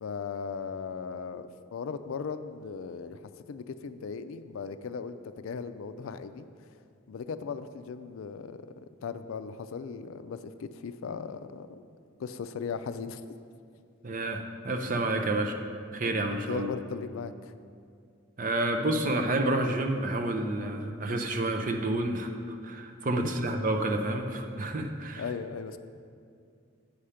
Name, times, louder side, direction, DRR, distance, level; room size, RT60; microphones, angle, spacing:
voice 1, 0.0-3.2 3.5-6.5 7.1-11.8 12.2-13.2 16.3-17.5 25.2-25.8, left 5 dB, 80° left, 12 dB, 0.4 m, -37 dB
voice 2, 14.0-15.6 15.9-16.7 18.4-25.2, right 2 dB, 40° right, 4 dB, 0.6 m, -29 dB
8.7 x 4.9 x 5.7 m, 2.3 s
head